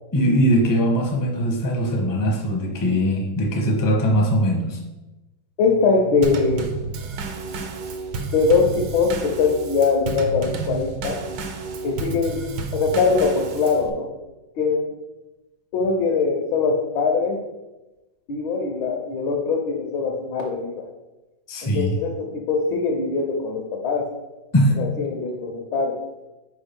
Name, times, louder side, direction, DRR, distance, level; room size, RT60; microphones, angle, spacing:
voice 1, 0.1-4.8 21.5-22.0 24.5-24.8, equal, 20° left, 0 dB, 0.5 m, -20 dB
voice 2, 5.6-6.7 8.3-11.2 11.8-12.4 12.7-14.1 14.6-14.9 15.7-17.4 18.3-20.9 21.6-24.1 24.8-26.0, left 4 dB, 75° left, 0 dB, 1.5 m, -22 dB
Drum kit / Snare drum / Bass drum, 6.2-13.9, right 4 dB, 70° right, 1.3 m, -31 dB
4.8 x 4.5 x 5.2 m, 1.1 s
omnidirectional pair, 2.2 m